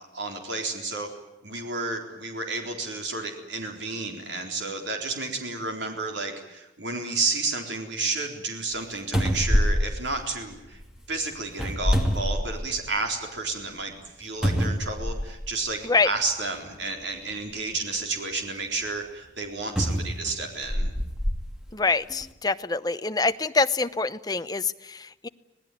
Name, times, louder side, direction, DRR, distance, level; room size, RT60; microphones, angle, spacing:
voice 1, 0.1-1.1 1.4-10.8 11.1-13.9 14.2-20.9, right 3 dB, 75° right, 3 dB, 3.9 m, -31 dB
sound 1, 8.7-8.8 9.1-10.8 11.5-12.9 13.4-13.5 14.4-15.5 16.5-16.6 19.8-21.4 22.1-22.2, equal, 5° right, 2.6 m, -25 dB
voice 2, 21.7-25.3, left 3 dB, 20° left, 11 dB, 0.8 m, -25 dB
25.5 x 19.0 x 9.3 m, 0.92 s
head